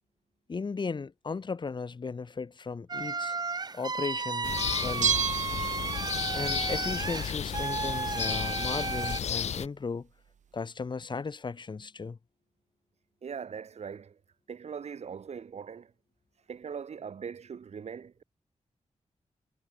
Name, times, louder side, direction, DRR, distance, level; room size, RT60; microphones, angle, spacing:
voice 1, 0.5-3.4 3.7-4.5 4.8-5.2 6.3-10.1 10.5-12.2, left 4 dB, 40° left, 6.2 m, -36 dB
sound 1, 2.9-9.2, right 4 dB, 35° right, 3.7 m, -33 dB
sound 2, 4.4-9.7, left 8 dB, 60° left, 0.7 m, -33 dB
Bell, 5.0-6.4 6.7-6.8, right 8 dB, 75° right, 2.6 m, -30 dB
voice 2, 13.2-14.2 14.5-15.9 16.5-18.2, right 6 dB, 60° right, 5.6 m, -41 dB
wide cardioid pair, 170°, 13 cm